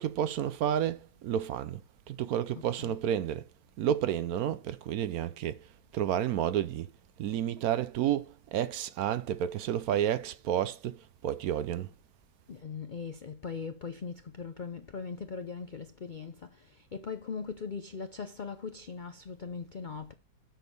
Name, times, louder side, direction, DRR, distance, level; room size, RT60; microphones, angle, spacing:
voice 1, 0.0-1.8 2.1-3.5 3.8-5.7 5.9-6.9 7.2-11.9, right 10 dB, 70° right, 1.0 m, -31 dB
voice 2, 2.6-3.0 12.5-20.1, left 5 dB, 60° left, 0.5 m, -40 dB
8.1 x 6.4 x 5.3 m
omnidirectional pair, 1.7 m